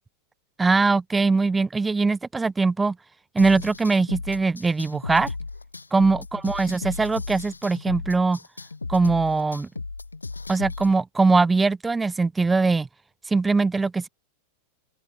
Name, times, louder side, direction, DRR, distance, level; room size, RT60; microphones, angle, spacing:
voice 1, 0.6-3.0 3.3-5.3 5.9-8.4 8.9-9.7 10.5-12.9 13.3-14.1, right 3 dB, 10° right, 0.4 m, -21 dB
sound 1, 3.4-10.9, left 3 dB, 80° left, 6.6 m, -35 dB
open air
figure-of-eight pair, 90°, 0 cm